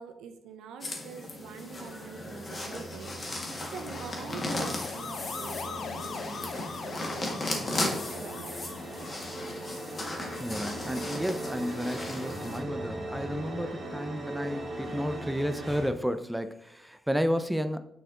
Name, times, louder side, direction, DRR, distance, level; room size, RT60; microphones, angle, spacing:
voice 1, 0.0-8.6, right 6 dB, 85° right, 7 dB, 0.6 m, -45 dB
sound 1, 0.8-12.6, left 2 dB, 40° left, 1.5 m, -36 dB
sound 2, 1.3-15.9, right 1 dB, 50° right, 1.9 m, -41 dB
sound 3, 2.5-11.8, left 5 dB, 65° left, 0.6 m, -43 dB
voice 2, 10.4-17.8, equal, 5° right, 10 dB, 0.5 m, -32 dB
6.5 x 4.3 x 3.7 m, 0.83 s
supercardioid pair, 60°, 0 cm